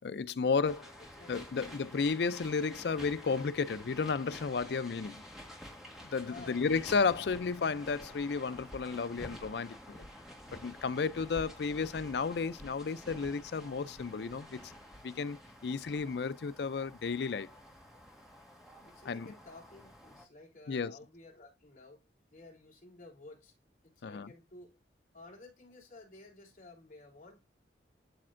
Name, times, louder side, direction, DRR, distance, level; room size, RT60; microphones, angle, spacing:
voice 1, 0.0-1.0 1.3-5.2 6.1-10.0 10.5-14.7 15.0-17.5 19.1-19.3 20.7-21.0 24.0-24.3, left 5 dB, 70° left, 0.4 m, -33 dB
sound 1, 0.6-20.3, equal, ahead, 1.7 m, -50 dB
voice 2, 1.0-1.6 5.7-5.8 6.3-6.6 16.5-16.9 17.9-18.0 18.8-23.5 23.8-24.8 25.1-27.4, left 2 dB, 45° left, 3.7 m, -54 dB
12.0 x 4.2 x 2.5 m
head